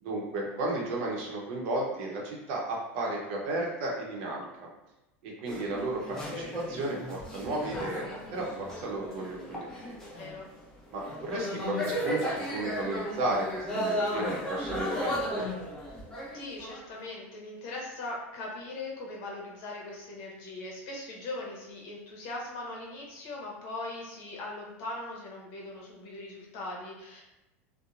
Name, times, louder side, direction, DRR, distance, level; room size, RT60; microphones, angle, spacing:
voice 1, 0.0-4.7 5.2-10.0 10.9-15.4, right 2 dB, 65° right, -1 dB, 0.7 m, -34 dB
sound 1, 5.5-10.5 10.9-17.0, left 1 dB, 10° left, 0.7 m, -35 dB
voice 2, 10.2-10.5 16.3-27.2, left 2 dB, 65° left, -2 dB, 0.8 m, -40 dB
2.8 x 2.1 x 2.4 m, 0.96 s
supercardioid pair, 110°, 7 cm